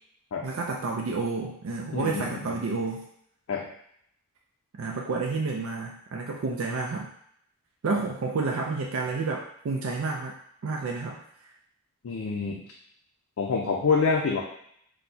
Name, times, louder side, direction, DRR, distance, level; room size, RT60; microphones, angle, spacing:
voice 1, 0.4-3.0 4.7-7.1 7.8-10.3 10.6-11.2, right 3 dB, 70° right, 0 dB, 0.4 m, -30 dB
voice 2, 1.9-2.5 3.5-3.6 12.0-12.6 13.4-14.4, left 5 dB, 75° left, -2 dB, 0.4 m, -26 dB
4.3 x 2.1 x 2.7 m, 0.69 s
head